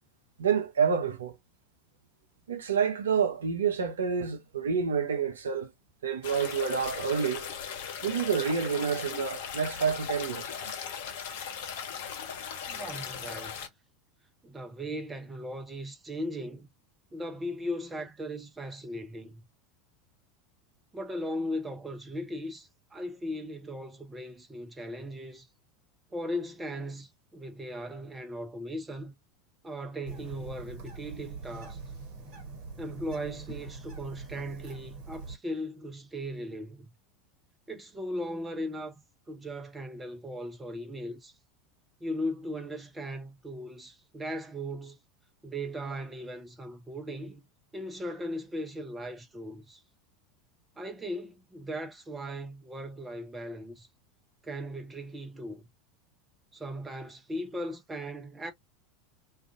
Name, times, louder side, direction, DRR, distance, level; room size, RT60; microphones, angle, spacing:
voice 1, 0.4-1.4 2.5-5.7 6.0-7.5 8.0-10.5, right 6 dB, 70° right, 0.5 m, -28 dB
sound 1, 6.2-13.7, left 7 dB, 60° left, 0.6 m, -38 dB
voice 2, 12.7-13.7 14.4-16.7 17.1-19.4 20.9-25.5 26.1-29.1 29.6-31.8 32.8-36.9 37.7-39.0 39.3-41.3 42.0-45.0 45.4-47.4 47.7-49.8 50.8-53.9 54.4-55.7 56.5-58.5, equal, 15° right, 0.6 m, -38 dB
Bird, 30.1-35.3, right 4 dB, 50° right, 1.1 m, -43 dB
2.4 x 2.4 x 2.4 m
figure-of-eight pair, 80°, 0 cm